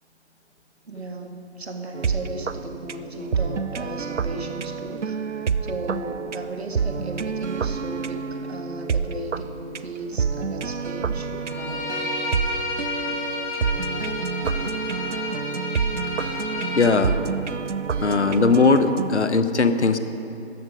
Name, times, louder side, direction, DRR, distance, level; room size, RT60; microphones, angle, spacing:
voice 1, 0.9-12.0 13.0-13.3, right 2 dB, 65° right, 3 dB, 1.9 m, -36 dB
sound 1, 1.9-19.1, right 5 dB, 85° right, 0.6 m, -28 dB
Bowed string instrument, 11.4-16.9, left 3 dB, 15° left, 3.5 m, -31 dB
voice 2, 16.8-17.2 18.0-20.0, left 4 dB, 75° left, 10 dB, 1.0 m, -19 dB
13.5 x 11.0 x 5.5 m, 2.7 s
figure-of-eight pair, 160°, 35 cm